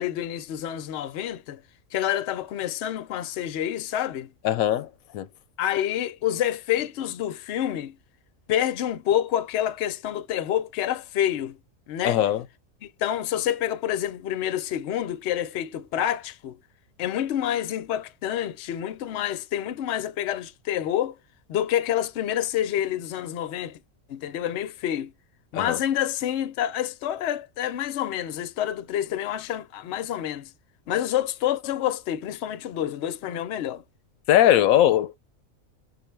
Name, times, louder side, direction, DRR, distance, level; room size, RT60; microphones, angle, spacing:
voice 1, 0.0-1.6 1.9-4.3 5.6-7.9 8.5-11.6 11.9-12.2 12.8-16.6 17.0-21.2 21.5-23.8 24.1-25.1 25.5-30.5 30.9-33.8, left 11 dB, 65° left, 0.8 m, -28 dB
voice 2, 4.4-4.9 5.1-5.3 12.0-12.4 25.5-25.8 34.3-35.2, left 12 dB, 90° left, 1.0 m, -20 dB
6.4 x 2.2 x 3.2 m
omnidirectional pair, 1.4 m